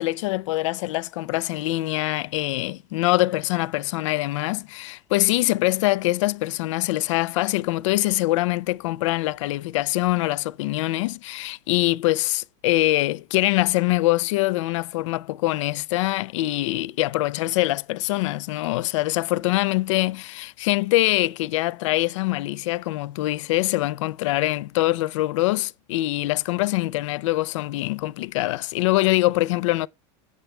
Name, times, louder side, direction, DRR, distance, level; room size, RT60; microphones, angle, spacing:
voice 1, 0.0-29.9, left 18 dB, 85° left, 0.4 m, -24 dB
7.9 x 6.5 x 3.2 m
supercardioid pair, 130°, 16 cm